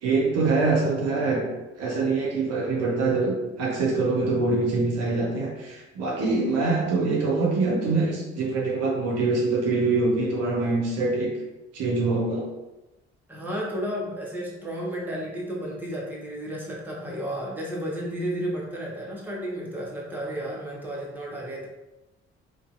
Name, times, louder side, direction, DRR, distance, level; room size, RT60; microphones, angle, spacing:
voice 1, 0.0-1.5 1.8-11.3 11.7-12.4, right 3 dB, 50° right, -2 dB, 0.6 m, -24 dB
voice 2, 13.3-21.7, equal, 5° right, -4 dB, 0.7 m, -32 dB
2.6 x 2.2 x 2.3 m, 1.0 s
figure-of-eight pair, 40°, 32 cm